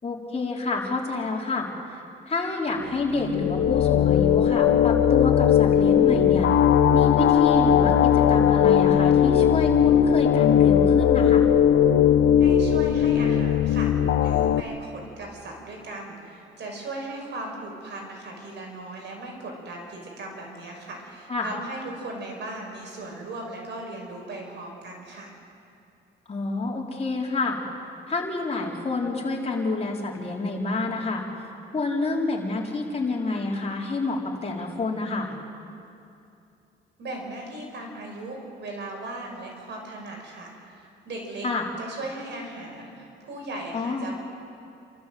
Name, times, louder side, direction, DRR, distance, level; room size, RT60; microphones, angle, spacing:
voice 1, 0.0-6.5 6.9-11.4 21.3-21.5 26.3-27.6 28.1-31.2 31.7-35.3 41.4-41.7 43.7-44.1, left 3 dB, 30° left, -1 dB, 4.2 m, -28 dB
sound 1, 3.0-14.6, left 9 dB, 70° left, 0.8 m, -19 dB
voice 2, 12.4-13.9 14.2-25.3 37.0-41.5 41.8-44.1, right 2 dB, 60° right, 0 dB, 5.8 m, -37 dB
28.0 x 14.0 x 7.9 m, 2.6 s
cardioid pair, 90°, 20 cm